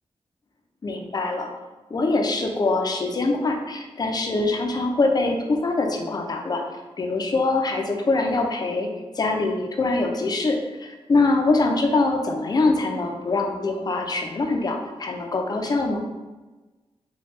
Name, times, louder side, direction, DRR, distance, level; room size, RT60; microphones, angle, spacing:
voice 1, 0.8-1.5 1.9-6.6 7.0-8.9 9.2-16.0, left 3 dB, 40° left, 3 dB, 0.5 m, -23 dB
3.1 x 2.3 x 4.3 m, 1.2 s
wide cardioid pair, 120°, 11 cm